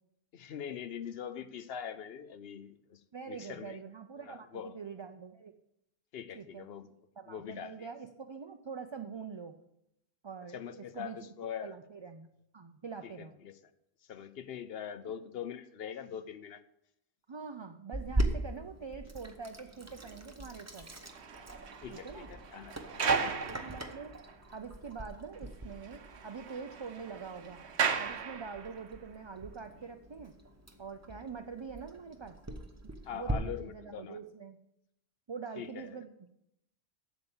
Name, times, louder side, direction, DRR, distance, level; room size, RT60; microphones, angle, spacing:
voice 1, 0.3-3.0 3.3-3.8 4.2-4.8 6.1-6.9 7.3-7.9 10.5-11.8 13.0-13.6 14.0-16.6 21.8-23.3 33.0-34.2 35.6-36.0, left 8 dB, 65° left, 13 dB, 0.9 m, -43 dB
voice 2, 3.1-5.5 6.3-6.7 7.2-9.6 10.2-11.3 11.6-12.3 12.5-13.4 15.0-15.1 17.3-20.9 21.9-22.3 23.1-24.2 24.5-27.6 28.0-30.3 30.8-32.4 33.1-34.6 35.3-36.3, right 5 dB, 40° right, 7 dB, 0.4 m, -44 dB
Sink (filling or washing), 17.9-33.3, right 2 dB, 15° right, 0.7 m, -40 dB
sound 1, 20.8-24.6 24.9-25.0 25.3-25.4 25.7-29.0 29.7-29.8, right 6 dB, 80° right, 1.1 m, -37 dB
8.1 x 7.1 x 7.1 m, 0.80 s
omnidirectional pair, 1.1 m